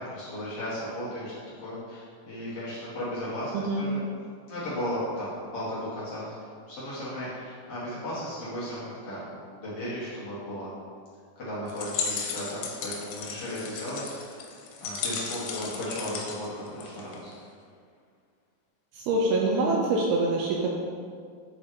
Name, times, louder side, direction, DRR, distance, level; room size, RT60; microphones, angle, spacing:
voice 1, 0.0-1.3 1.6-4.0 4.5-9.2 9.6-10.7 11.4-14.1 14.8-17.3, equal, 70° left, -10 dB, 1.4 m, -35 dB
sound 1, 11.7-17.3, left 5 dB, 85° left, 3.0 m, -35 dB
voice 2, 19.0-20.7, right 2 dB, 85° right, -2 dB, 2.2 m, -25 dB
7.6 x 3.8 x 4.6 m, 2.1 s
omnidirectional pair, 5.0 m